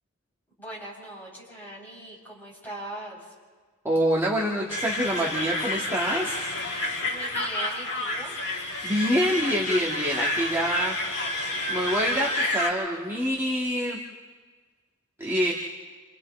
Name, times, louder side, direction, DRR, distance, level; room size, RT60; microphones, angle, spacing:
voice 1, 0.6-3.3 6.7-8.4, right 1 dB, 10° left, -7 dB, 7.7 m, -40 dB
voice 2, 3.8-6.4 8.8-11.0 11.7-14.0 15.2-15.5, equal, 10° right, -4 dB, 1.7 m, -26 dB
sound 1, 4.7-12.7, left 1 dB, 80° left, 4.3 m, -29 dB
29.5 x 28.5 x 3.2 m, 1.4 s
head